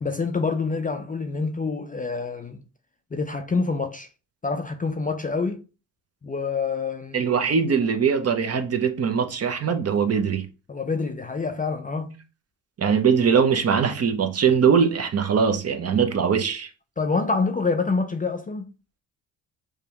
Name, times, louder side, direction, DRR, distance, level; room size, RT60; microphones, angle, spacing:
voice 1, 0.0-2.6 3.1-4.1 4.4-5.6 6.2-7.2 10.7-12.2 17.0-18.7, left 4 dB, 20° left, 0.5 m, -26 dB
voice 2, 7.1-10.5 12.8-16.7, right 6 dB, 35° right, 0.7 m, -21 dB
4.8 x 2.3 x 2.9 m
supercardioid pair, 65°, 41 cm